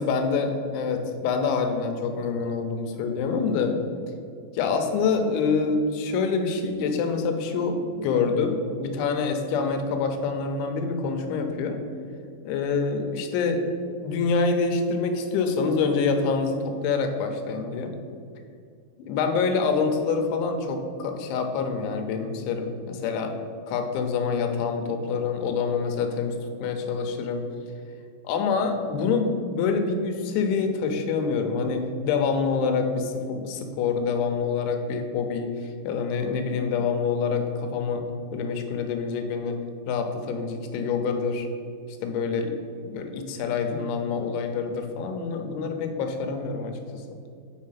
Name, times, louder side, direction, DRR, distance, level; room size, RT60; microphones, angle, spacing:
voice 1, 0.0-3.8 4.5-11.8 12.4-13.6 14.0-17.9 19.0-23.3 23.7-26.4 26.6-27.4 28.2-38.1 38.3-39.6 39.9-41.5 42.0-42.5 42.9-47.0, left 5 dB, 80° left, 5 dB, 3.1 m, -26 dB
6.8 x 6.3 x 5.7 m, 2.4 s
omnidirectional pair, 5.4 m